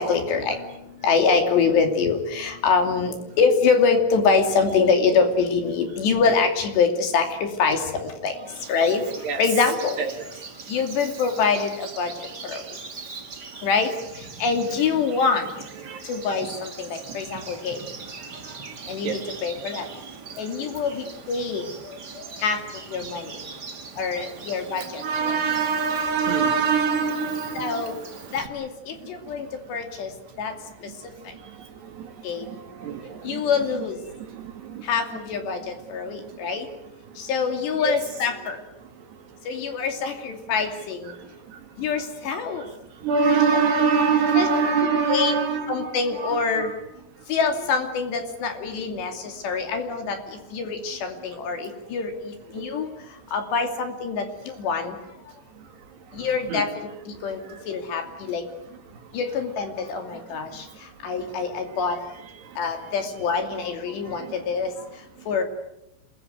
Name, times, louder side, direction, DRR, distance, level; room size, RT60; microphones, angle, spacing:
voice 1, 0.0-9.0 9.4-10.0 10.7-12.6 13.6-15.5 16.0-17.8 18.9-19.9 20.4-22.6 22.9-23.4 24.0-25.4 27.5-28.0 28.3-30.1 30.4-30.6 30.8-31.3 32.2-32.6 33.2-34.0 34.8-36.7 37.2-38.6 39.4-41.1 41.8-42.7 44.3-44.5 45.1-45.4 45.7-46.7 47.3-55.0 56.1-57.4 57.7-58.5 59.1-62.0 62.6-65.4, left 5 dB, 60° left, 5 dB, 4.7 m, -25 dB
Bird vocalization bird call bird song, 8.5-28.5, right 4 dB, 45° right, 1.4 m, -41 dB
voice 2, 25.0-27.9 32.0-32.1 32.5-33.5 34.3-34.4 34.7-34.8 37.8-38.0 43.0-45.9 46.2-46.7 52.6-52.7 56.5-56.6, right 5 dB, 60° right, 5 dB, 4.1 m, -24 dB
28.0 x 21.5 x 9.4 m, 0.86 s
omnidirectional pair, 5.8 m